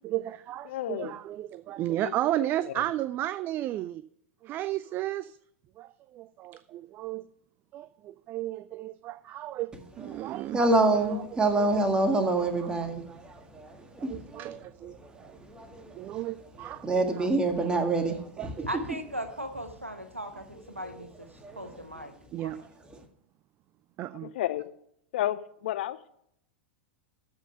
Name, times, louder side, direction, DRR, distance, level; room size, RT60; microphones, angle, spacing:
voice 1, 0.0-4.0 4.4-5.4 5.8-7.3 7.7-9.7 10.0-11.2 11.5-11.7 12.4-12.8 14.0-15.4 15.9-17.3 17.5-17.8 18.4-18.7 22.3-22.6 24.0-24.3, right 14 dB, 30° right, 0.3 m, -34 dB
voice 2, 0.6-1.2 2.0-2.8 24.2-24.7 25.1-26.1, left 13 dB, 55° left, 0.7 m, -33 dB
voice 3, 10.5-14.5 15.0-16.0 16.8-18.7 20.9-21.0 21.4-21.6, right 2 dB, 15° right, 1.7 m, -27 dB
voice 4, 18.7-21.3 21.6-22.1 22.4-22.6, right 1 dB, 90° right, 1.2 m, -38 dB
13.0 x 5.6 x 5.5 m
figure-of-eight pair, 95°, 7 cm